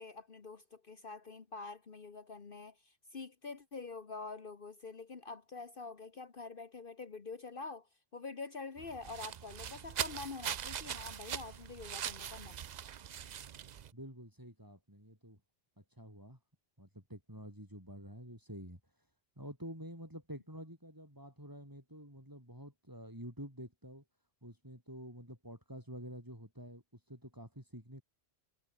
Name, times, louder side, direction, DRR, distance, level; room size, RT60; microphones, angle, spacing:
voice 1, 0.0-12.6, left 4 dB, 55° left, 1.5 m, -46 dB
sound 1, 8.8-13.9, right 9 dB, 50° right, 0.6 m, -41 dB
voice 2, 13.9-15.4 15.8-16.4 16.8-18.8 19.4-24.0 24.4-28.0, equal, 20° right, 7.8 m, -49 dB
omnidirectional pair, 1.1 m